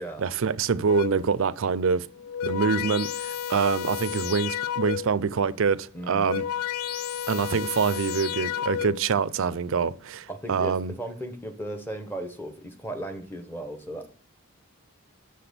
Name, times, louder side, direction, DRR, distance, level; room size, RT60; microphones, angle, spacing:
voice 1, 0.0-2.1 2.4-6.4 7.3-10.9, right 5 dB, 60° right, 0.4 m, -25 dB
sound 1, 0.9-1.4 2.1-5.3 6.0-9.2, left 9 dB, 80° left, 0.4 m, -32 dB
voice 2, 5.9-6.3 10.3-14.1, right 1 dB, 10° left, 1.0 m, -36 dB
6.5 x 5.9 x 6.8 m
head